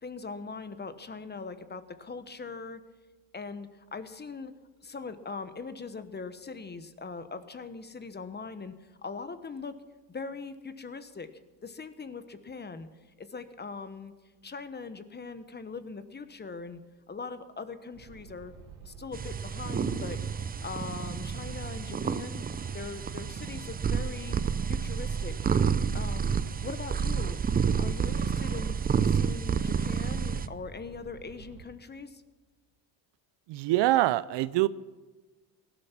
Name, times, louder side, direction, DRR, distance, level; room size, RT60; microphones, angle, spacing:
voice 1, 0.0-2.8 3.3-4.5 4.8-9.8 10.1-11.3 11.6-12.9 13.2-14.1 14.4-16.8 17.1-18.5 18.8-20.2 20.6-22.4 22.7-24.4 24.7-25.4 25.9-26.3 26.6-27.4 27.8-28.8 29.0-32.2, left 4 dB, 20° left, 12 dB, 1.1 m, -41 dB
sound 1, 17.9-31.6, right 6 dB, 85° right, 2.7 m, -49 dB
sound 2, 19.1-30.5, right 6 dB, 20° right, 0.5 m, -30 dB
voice 2, 33.5-34.7, right 16 dB, 65° right, 18 dB, 0.6 m, -24 dB
18.0 x 12.0 x 6.0 m, 1.3 s
supercardioid pair, 100°, 47 cm